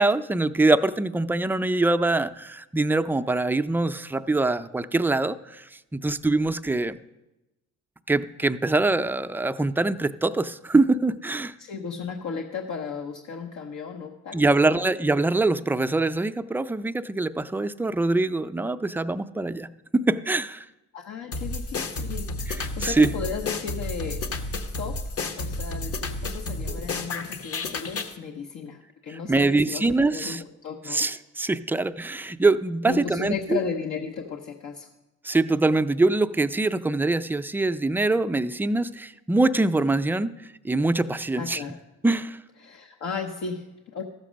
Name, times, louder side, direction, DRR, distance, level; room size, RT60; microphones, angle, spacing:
voice 1, 0.0-7.0 8.1-11.5 14.3-19.7 19.9-20.7 22.5-23.1 29.1-30.4 30.9-33.6 35.2-40.3 40.6-41.6 42.0-42.4, right 2 dB, 5° right, 10 dB, 0.4 m, -24 dB
voice 2, 11.6-14.8 20.9-22.3 22.6-24.2 24.8-25.0 25.3-31.1 32.9-34.9 41.3-41.8 42.6-44.0, left 5 dB, 75° left, 2 dB, 0.9 m, -35 dB
sound 1, 21.3-28.2, left 2 dB, 50° left, 1.1 m, -31 dB
13.5 x 6.7 x 6.3 m, 1.0 s
cardioid pair, 90°, 30 cm